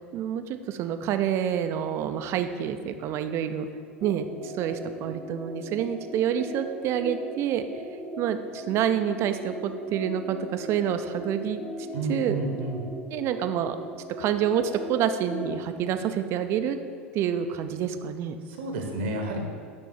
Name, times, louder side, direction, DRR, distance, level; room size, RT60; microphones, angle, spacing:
voice 1, 0.1-3.7 4.0-7.6 8.2-11.6 12.1-12.4 13.1-13.8 14.2-16.8 17.1-18.4, right 9 dB, 40° right, 9 dB, 0.5 m, -28 dB
sound 1, 4.0-15.9, equal, 10° left, 0.9 m, -39 dB
voice 2, 11.9-12.9 18.5-19.4, right 2 dB, 65° right, 3 dB, 1.0 m, -30 dB
9.2 x 3.5 x 6.0 m, 2.2 s
figure-of-eight pair, 85°, 7 cm